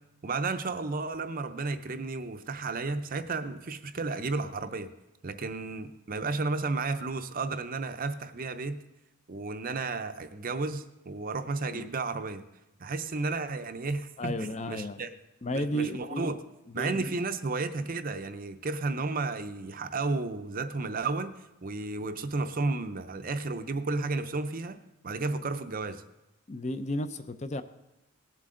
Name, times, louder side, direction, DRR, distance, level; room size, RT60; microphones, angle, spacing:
voice 1, 0.2-4.9 5.2-8.8 9.3-12.4 12.8-15.2 15.5-16.4 16.7-24.8 25.0-26.0, right 3 dB, 40° right, 10 dB, 0.5 m, -33 dB
voice 2, 14.2-15.0 15.4-16.3 16.8-17.0 26.5-27.6, equal, 30° left, 11 dB, 0.5 m, -33 dB
18.0 x 7.6 x 3.8 m, 0.96 s
head